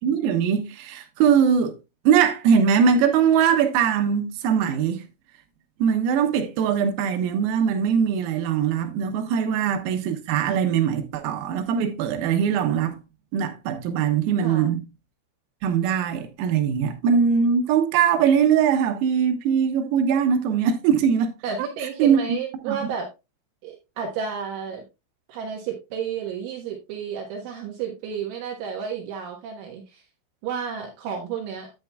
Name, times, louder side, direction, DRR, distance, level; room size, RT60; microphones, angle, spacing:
voice 1, 0.0-1.8 2.1-5.0 5.8-13.0 13.3-14.8 15.6-21.3 22.0-22.2 22.7-22.9, right 7 dB, 90° right, 3.9 m, -21 dB
voice 2, 9.4-9.8 14.4-14.8 21.4-23.1 23.6-24.8 25.3-30.0 30.4-31.7, right 7 dB, 75° right, 3.6 m, -32 dB
10.5 x 8.7 x 2.3 m
omnidirectional pair, 5.9 m